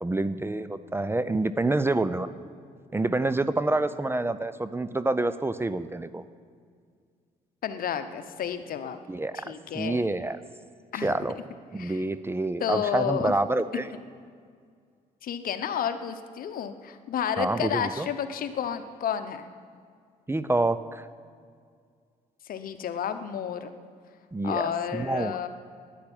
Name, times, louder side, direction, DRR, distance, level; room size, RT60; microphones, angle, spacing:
voice 1, 0.0-2.3 2.9-6.2 9.1-10.4 11.0-11.3 11.7-13.9 17.4-18.1 20.3-21.0 24.3-25.4, right 2 dB, 15° right, 14 dB, 0.5 m, -27 dB
voice 2, 7.6-9.0 9.3-10.0 10.9-11.1 11.8-12.0 12.6-13.3 13.7-13.8 15.2-19.5 22.5-23.7 24.4-25.5, left 8 dB, 65° left, 10 dB, 0.9 m, -31 dB
10.5 x 10.0 x 8.9 m, 2.1 s
supercardioid pair, 75°, 16 cm